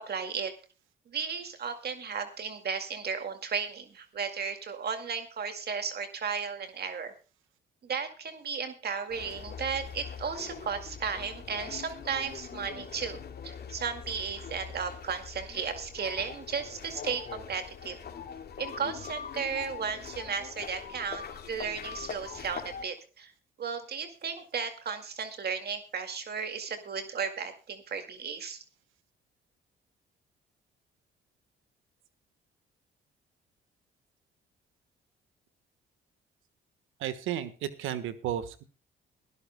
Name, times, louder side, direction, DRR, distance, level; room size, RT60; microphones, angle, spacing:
voice 1, 0.1-0.5 1.1-7.1 7.8-18.0 18.6-23.3 23.6-28.6, right 6 dB, 55° right, 7 dB, 2.1 m, -35 dB
sound 1, 9.1-22.8, left 7 dB, 55° left, 2.8 m, -42 dB
voice 2, 37.0-38.6, right 11 dB, 90° right, 12 dB, 1.4 m, -33 dB
22.0 x 12.5 x 2.2 m, 0.35 s
cardioid pair, 90°, 20 cm